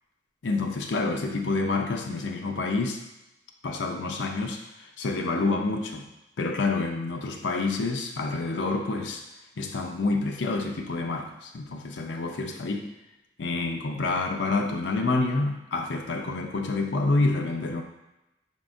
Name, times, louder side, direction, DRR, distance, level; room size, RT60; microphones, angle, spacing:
voice 1, 0.4-3.0 3.6-6.1 6.4-9.2 9.6-12.9 13.4-17.8, left 3 dB, 90° left, 3 dB, 0.5 m, -28 dB
5.1 x 3.6 x 2.6 m, 0.93 s
head